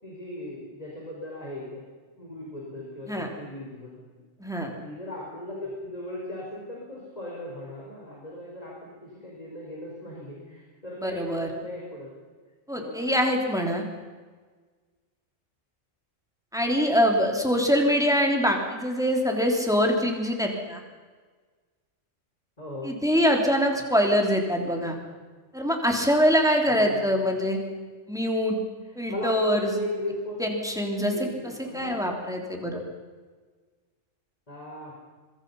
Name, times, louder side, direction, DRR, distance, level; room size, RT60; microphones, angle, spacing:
voice 1, 0.0-1.8 2.2-4.0 4.8-12.1 12.7-13.2 22.6-22.9 26.7-27.4 28.8-30.4 31.1-32.1 34.5-34.9, left 1 dB, 30° left, -3 dB, 5.0 m, -37 dB
voice 2, 4.4-4.7 11.0-11.5 12.7-13.8 16.5-20.8 22.8-25.0 25.5-27.6 28.1-28.6 29.0-29.7 30.4-31.3 31.7-32.8, equal, 5° right, 1 dB, 3.6 m, -24 dB
25.5 x 23.0 x 5.7 m, 1.4 s
omnidirectional pair, 1.3 m